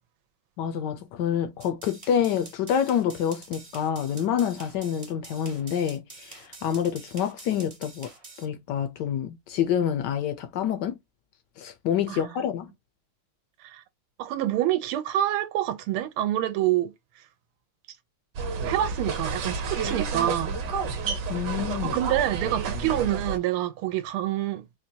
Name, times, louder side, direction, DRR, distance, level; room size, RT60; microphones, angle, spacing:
voice 1, 0.6-8.1 8.4-11.0 11.6-12.7 21.3-22.0, left 9 dB, 75° left, 1.0 m, -27 dB
sound 1, 1.6-8.4, right 3 dB, 45° right, 0.4 m, -47 dB
voice 2, 14.2-16.9 18.6-20.6 21.8-24.6, right 13 dB, 85° right, 1.5 m, -27 dB
sound 2, 18.3-23.4, right 4 dB, 60° right, 1.4 m, -30 dB
4.3 x 2.2 x 2.7 m
omnidirectional pair, 2.3 m